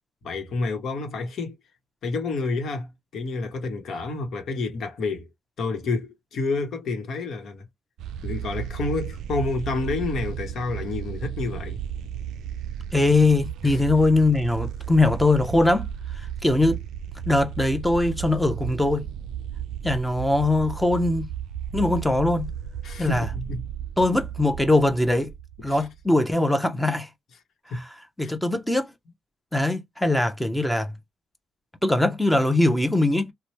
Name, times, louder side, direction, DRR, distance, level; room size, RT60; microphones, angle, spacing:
voice 1, 0.2-1.6 2.0-2.9 3.1-5.3 5.6-7.6 8.2-11.8 13.6-13.8 22.8-23.6 25.7-25.8 27.7-27.8 28.2-28.3, left 3 dB, 65° left, 1.1 m, -29 dB
sound 1, 8.0-26.0, right 9 dB, 80° right, 0.3 m, -34 dB
voice 2, 12.9-15.9 16.1-16.8 17.3-19.0 19.8-21.3 21.7-22.5 23.0-23.3 24.0-25.3 25.6-27.1 27.7-28.9 29.5-30.9 31.8-33.3, left 2 dB, 5° left, 0.7 m, -21 dB
3.0 x 2.2 x 2.9 m
cardioid pair, 90°, 0 cm